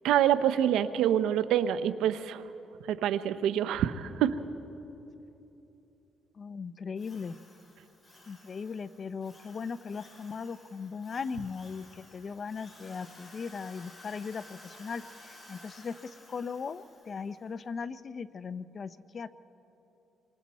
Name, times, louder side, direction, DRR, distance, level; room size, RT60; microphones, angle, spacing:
voice 1, 0.0-2.4 2.9-4.4, right 10 dB, 85° right, 12 dB, 0.7 m, -26 dB
voice 2, 6.4-7.4 8.3-19.3, left 5 dB, 45° left, 14 dB, 0.6 m, -38 dB
Drill, 7.0-17.4, left 1 dB, 25° left, 6.3 m, -54 dB
28.0 x 24.5 x 4.2 m, 3.0 s
cardioid pair, 90°, 0 cm